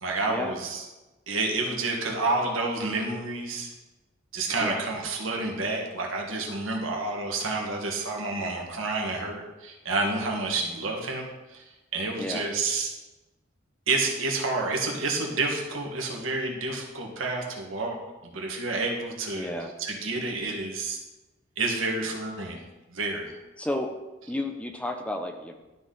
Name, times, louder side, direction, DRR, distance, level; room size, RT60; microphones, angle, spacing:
voice 1, 0.0-0.8 1.3-3.7 4.3-11.6 11.9-12.9 13.9-18.0 18.2-19.5 19.8-21.0 21.6-22.6 22.9-23.3, right 3 dB, 75° right, 0 dB, 1.5 m, -29 dB
voice 2, 19.3-19.7 23.6-23.9 24.3-25.5, left 1 dB, 5° left, 4 dB, 0.5 m, -32 dB
12.0 x 4.1 x 3.8 m, 1.1 s
head